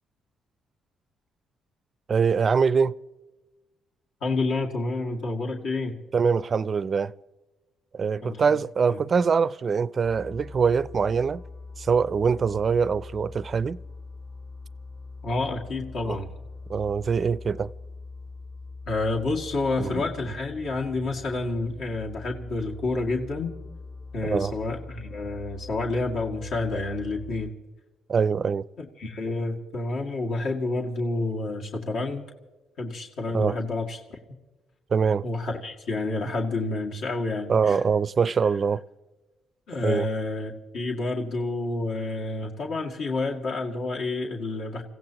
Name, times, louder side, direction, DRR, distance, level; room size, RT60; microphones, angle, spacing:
voice 1, 2.1-2.9 6.1-7.1 7.9-11.4 11.8-13.8 16.0-16.2 16.7-17.7 19.8-20.0 24.3-24.5 28.1-28.7 33.3-33.6 34.9-35.2 37.5-38.8 39.8-40.1, right 6 dB, 40° right, 0.4 m, -23 dB
voice 2, 4.2-6.0 8.2-8.4 8.9-9.0 15.2-16.3 18.9-23.6 24.1-27.5 28.8-32.3 32.8-34.2 35.2-37.8 39.7-44.8, left 2 dB, 70° left, 2.2 m, -29 dB
sound 1, 10.0-27.5, left 3 dB, 40° left, 4.8 m, -42 dB
29.0 x 16.0 x 2.9 m
cardioid pair, 115°, 0 cm